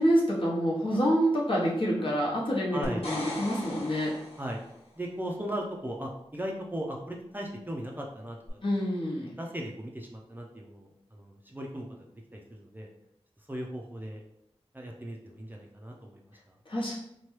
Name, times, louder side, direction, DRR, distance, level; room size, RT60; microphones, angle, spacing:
voice 1, 0.0-4.1 8.6-9.3 16.7-17.0, equal, 55° left, -5 dB, 1.0 m, -27 dB
voice 2, 2.7-3.1 4.4-4.6 5.0-8.6 9.4-11.9 12.3-12.9 13.5-14.2 14.7-16.5, equal, 20° right, -1 dB, 0.5 m, -37 dB
sound 1, 2.8-4.8 8.5-8.6, left 1 dB, 70° left, 1.0 m, -39 dB
2.9 x 2.2 x 3.1 m, 0.78 s
wide cardioid pair, 65°, 11 cm